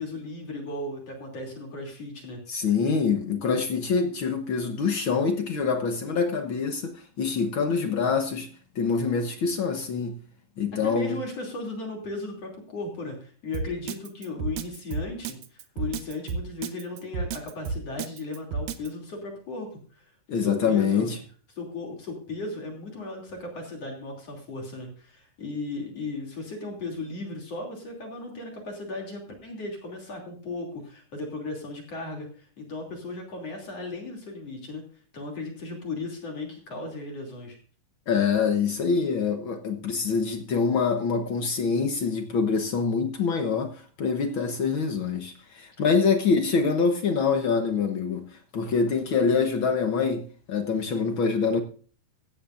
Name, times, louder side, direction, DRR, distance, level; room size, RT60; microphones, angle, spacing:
voice 1, 0.0-2.4 10.8-21.1 21.6-34.8 35.1-37.6, left 3 dB, 45° left, 3.9 m, -36 dB
voice 2, 2.5-8.5 8.7-10.2 10.6-11.2 20.3-21.2 38.1-48.2 48.5-51.6, left 5 dB, 65° left, 1.2 m, -25 dB
Drum kit, 13.5-18.9, right 5 dB, 70° right, 2.3 m, -31 dB
16.5 x 14.0 x 2.6 m
omnidirectional pair, 4.0 m